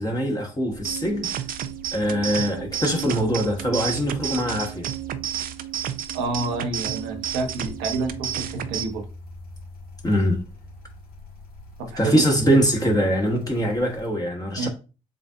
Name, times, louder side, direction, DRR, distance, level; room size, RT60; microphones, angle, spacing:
voice 1, 0.0-1.3 1.9-4.9 10.0-10.4 12.0-14.7, equal, 20° left, 1.3 m, -23 dB
sound 1, 0.7-14.1, equal, 60° left, 1.9 m, -43 dB
sound 2, 0.8-8.8, right 10 dB, 55° right, 0.5 m, -31 dB
voice 2, 6.1-9.0 11.8-12.2 14.6-14.7, right 3 dB, 75° right, 1.0 m, -28 dB
7.5 x 2.5 x 2.5 m
hypercardioid pair, 45°, 17 cm